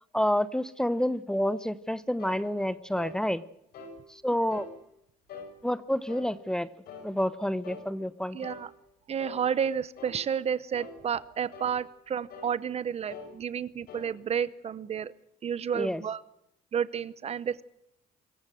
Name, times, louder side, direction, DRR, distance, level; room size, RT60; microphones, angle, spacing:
voice 1, 0.1-3.4 4.2-4.7 5.6-6.7 7.0-8.4 15.7-16.0, equal, 5° left, 15 dB, 0.9 m, -28 dB
sound 1, 2.2-2.4 3.0-3.2 3.7-4.0 4.5-4.7 5.3-5.5 6.1-6.3 6.9-7.1 7.6-7.9 8.4-8.7 9.2-9.4 10.0-10.2 10.7-11.0 11.5-11.7 12.3-12.5 13.1-13.3 13.9-14.1, left 4 dB, 85° left, 6.1 m, -44 dB
voice 2, 8.3-8.7 9.1-15.1 15.4-16.2 16.7-17.6, right 7 dB, 40° right, 18 dB, 0.8 m, -31 dB
24.5 x 14.5 x 7.8 m, 0.80 s
cardioid pair, 140°, 15 cm